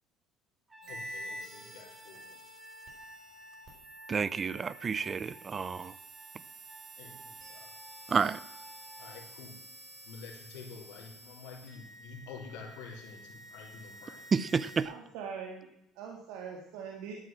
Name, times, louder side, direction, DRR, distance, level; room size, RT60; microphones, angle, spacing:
Trumpet, 0.7-9.3, left 1 dB, 15° right, 2.6 m, -53 dB
sound 1, 0.8-14.8, right 1 dB, 50° right, 4.5 m, -50 dB
voice 1, 0.9-2.4 7.0-7.7 9.0-9.6 10.0-14.3, left 5 dB, 85° left, 3.9 m, -48 dB
voice 2, 4.1-5.9 8.1-8.4 14.3-14.9, right 5 dB, 30° right, 0.6 m, -30 dB
voice 3, 14.8-15.7 16.0-17.2, right 6 dB, 80° right, 2.3 m, -42 dB
12.5 x 9.8 x 7.6 m
cardioid pair, 110°, 0 cm